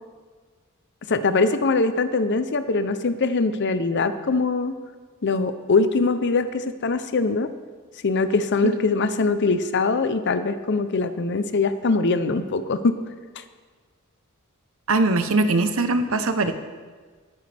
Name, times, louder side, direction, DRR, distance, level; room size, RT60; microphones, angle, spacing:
voice 1, 1.1-4.8 5.2-7.5 8.0-13.0 13.4-13.5, left 3 dB, 55° left, 11 dB, 0.7 m, -22 dB
voice 2, 14.9-16.5, right 2 dB, 70° right, 9 dB, 0.9 m, -21 dB
17.5 x 9.2 x 3.5 m, 1.5 s
head